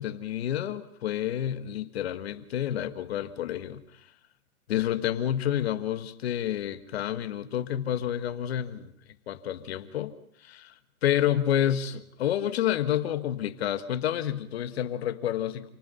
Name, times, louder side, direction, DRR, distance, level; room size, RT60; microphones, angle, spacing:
voice 1, 0.0-4.1 4.7-8.9 9.3-10.1 10.4-10.7 11.0-15.7, left 11 dB, 45° left, 10 dB, 1.6 m, -29 dB
28.5 x 19.0 x 5.5 m, 0.67 s
hypercardioid pair, 150°, 43 cm